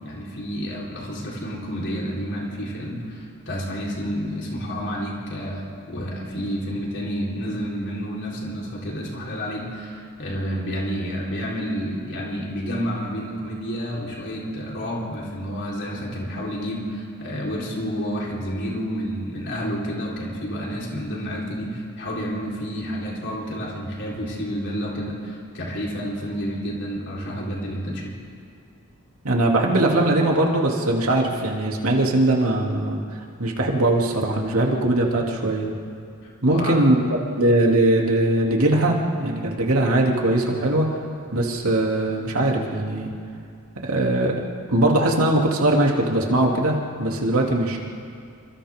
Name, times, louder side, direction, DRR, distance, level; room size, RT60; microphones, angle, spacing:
voice 1, 0.0-28.1 36.2-36.8, equal, 55° left, -4 dB, 4.2 m, -30 dB
voice 2, 29.2-33.0 33.4-35.7 36.4-37.0 37.4-40.9 41.3-43.1 43.8-44.4 44.7-47.8, right 1 dB, 75° right, -1 dB, 2.9 m, -20 dB
28.5 x 25.5 x 3.7 m, 2.4 s
head